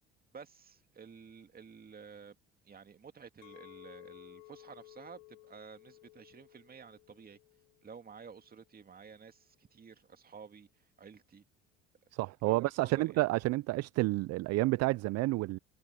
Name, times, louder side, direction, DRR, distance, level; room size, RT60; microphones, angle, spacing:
voice 1, 0.3-2.4 2.6-7.4 7.8-10.7 11.0-11.4 12.5-13.2, right 6 dB, 30° right, 2.2 m, -52 dB
Chink clink, 3.4-8.6, left 21 dB, 75° left, 1.4 m, -56 dB
voice 2, 12.1-15.6, right 20 dB, 55° right, 0.5 m, -30 dB
hypercardioid pair, 75°, 30 cm